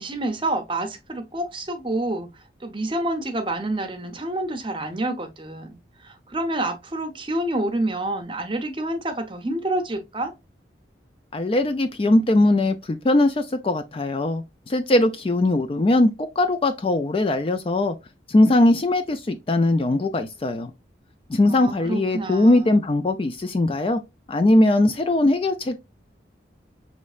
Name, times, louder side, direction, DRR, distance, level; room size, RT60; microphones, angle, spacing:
voice 1, 0.0-2.3 2.6-5.8 6.0-10.3 21.5-22.8, right 1 dB, 30° right, 0.7 m, -28 dB
voice 2, 11.3-17.9 18.3-20.7 21.3-24.0 24.3-25.8, left 2 dB, 30° left, 0.3 m, -20 dB
5.3 x 3.1 x 2.4 m
head